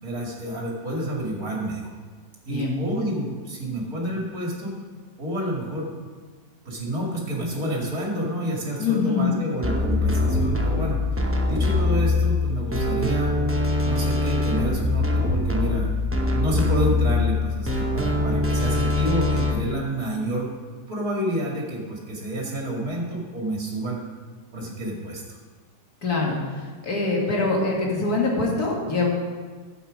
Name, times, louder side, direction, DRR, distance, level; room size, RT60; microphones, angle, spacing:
voice 1, 0.0-1.9 2.4-4.7 5.2-5.9 6.6-11.0 11.4-13.3 13.8-15.9 16.2-20.5 20.9-24.0 24.5-25.4, right 1 dB, 60° right, -3 dB, 2.9 m, -29 dB
voice 2, 8.8-9.5 26.0-26.4 26.8-29.1, left 3 dB, 60° left, -2 dB, 2.5 m, -23 dB
sound 1, 9.6-19.5, left 2 dB, 15° right, 0.5 m, -23 dB
12.0 x 8.1 x 5.2 m, 1.5 s
omnidirectional pair, 1.8 m